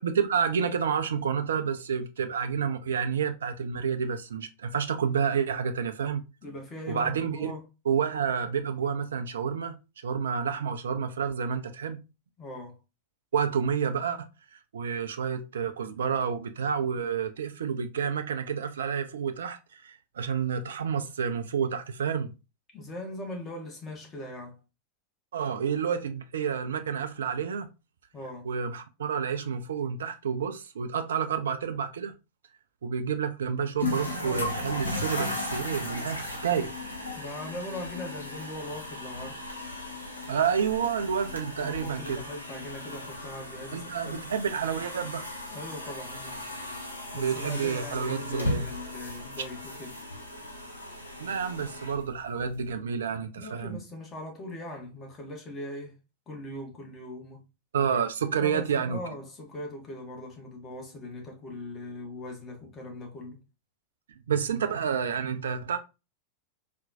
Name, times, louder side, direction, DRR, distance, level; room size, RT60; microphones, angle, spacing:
voice 1, 0.0-6.2 6.9-7.5 7.9-9.7 10.0-12.0 13.3-14.3 14.5-22.3 25.3-27.7 28.4-32.1 32.8-36.7 40.3-42.2 43.7-45.2 47.1-48.7 51.2-53.8 57.7-59.0 64.3-65.8, right 7 dB, 65° right, 0.3 m, -29 dB
voice 2, 6.4-7.6 12.4-12.8 22.7-24.6 28.1-28.5 37.2-39.4 41.6-44.2 45.5-46.4 47.1-50.0 53.4-56.0 56.3-57.4 58.3-63.4, left 1 dB, 25° left, 1.1 m, -40 dB
sound 1, 33.8-52.7, left 2 dB, 80° left, 0.9 m, -37 dB
4.1 x 2.2 x 2.5 m
figure-of-eight pair, 90°, 0 cm